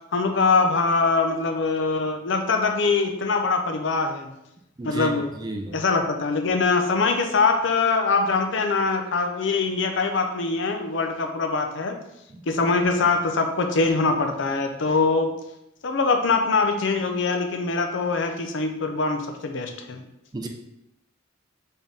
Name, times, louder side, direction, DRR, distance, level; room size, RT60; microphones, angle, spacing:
voice 1, 0.1-4.3 4.8-5.3 5.7-12.0 12.5-15.3 15.8-20.0, left 4 dB, 60° left, 5 dB, 0.6 m, -23 dB
voice 2, 4.8-5.8 20.3-20.5, right 1 dB, 20° right, 4 dB, 0.4 m, -32 dB
4.3 x 3.6 x 3.5 m, 0.85 s
head